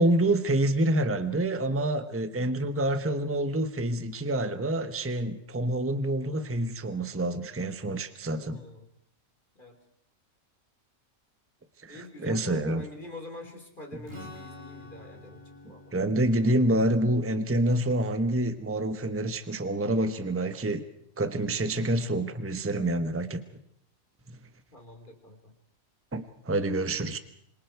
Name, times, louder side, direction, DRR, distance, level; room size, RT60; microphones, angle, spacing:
voice 1, 0.0-8.6 11.8-12.8 15.9-20.8 21.2-23.4 24.3-24.4 26.1-27.2, right 1 dB, 10° right, 10 dB, 1.0 m, -27 dB
voice 2, 8.5-8.9 9.6-9.8 11.9-16.0 24.7-25.5, left 1 dB, 35° left, 4 dB, 3.8 m, -45 dB
Strum, 14.1-19.7, left 1 dB, 45° right, 3.2 m, -49 dB
26.5 x 26.0 x 4.7 m, 0.74 s
omnidirectional pair, 1.4 m